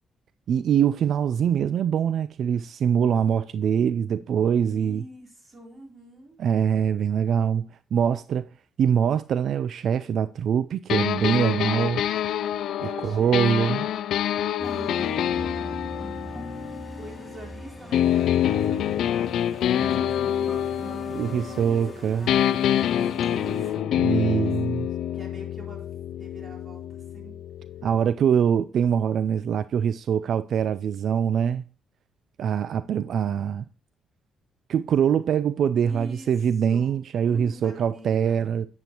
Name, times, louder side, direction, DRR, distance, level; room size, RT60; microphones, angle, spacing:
voice 1, 0.5-5.0 6.4-8.5 8.8-12.1 13.0-13.9 21.1-22.3 24.0-24.9 27.8-31.6 32.4-33.6 34.7-38.7, right 8 dB, 65° right, 0.4 m, -23 dB
voice 2, 4.7-6.4 12.8-14.0 14.7-15.6 16.1-16.3 17.0-24.5 25.1-27.4 35.8-36.3 36.6-38.4, right 1 dB, 30° right, 3.6 m, -46 dB
sound 1, 10.9-17.4 17.9-21.9 22.3-28.0, left 10 dB, 75° left, 0.3 m, -26 dB
sound 2, 14.6-23.7, left 1 dB, 10° left, 2.8 m, -39 dB
9.5 x 7.6 x 2.9 m
cardioid pair, 90°, 0 cm